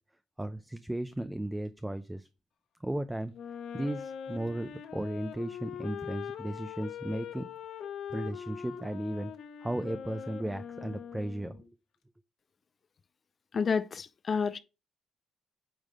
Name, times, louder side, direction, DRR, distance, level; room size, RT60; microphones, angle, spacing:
voice 1, 0.4-2.3 2.8-3.3 3.7-7.5 8.1-9.3 9.6-11.6, right 1 dB, 10° right, 0.6 m, -35 dB
Wind instrument woodwind instrument, 3.3-11.6, left 8 dB, 70° left, 1.1 m, -42 dB
voice 2, 13.5-14.6, left 5 dB, 45° left, 0.5 m, -29 dB
8.9 x 3.2 x 5.2 m
cardioid pair, 90°, 0 cm